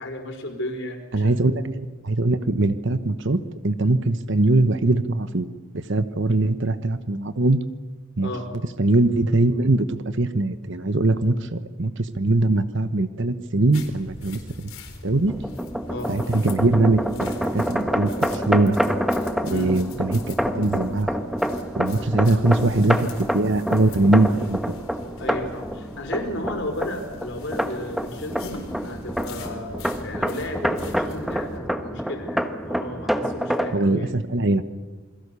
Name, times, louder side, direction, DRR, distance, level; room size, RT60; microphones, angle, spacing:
voice 1, 0.0-1.5 8.2-8.5 15.9-16.1 19.5-19.8 22.0-22.1 25.2-34.1, left 1 dB, 55° left, 5 dB, 4.6 m, -33 dB
voice 2, 1.1-5.5 5.7-7.6 8.2-8.3 8.8-14.7 15.0-15.3 16.1-18.8 19.4-21.2 21.8-23.1 23.3-24.8 33.7-34.6, right 2 dB, 55° right, 11 dB, 1.1 m, -22 dB
sound 1, 13.7-31.6, left 2 dB, 70° left, 4.0 m, -43 dB
sound 2, 15.3-33.7, equal, ahead, 1.1 m, -27 dB
28.0 x 22.0 x 6.9 m, 1.3 s
head